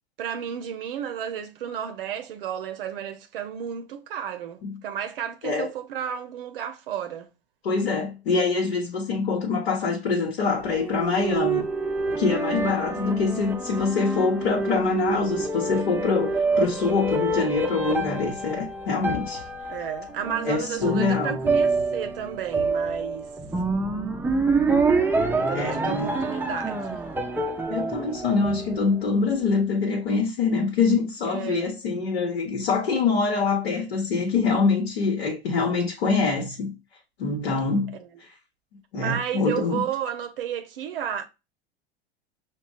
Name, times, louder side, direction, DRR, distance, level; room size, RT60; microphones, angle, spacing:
voice 1, 0.2-7.3 17.8-18.2 19.7-23.3 25.3-27.0 31.3-31.8 38.0-38.1 38.9-41.3, right 9 dB, 65° right, 0.6 m, -32 dB
voice 2, 7.6-11.7 12.2-19.4 20.5-21.4 25.5-26.1 27.7-36.7 37.2-37.9 38.2-38.3 38.9-39.8, left 4 dB, 70° left, 1.1 m, -25 dB
sound 1, 10.6-29.2, right 3 dB, 5° right, 0.5 m, -27 dB
6.0 x 2.3 x 2.3 m
figure-of-eight pair, 85°, 31 cm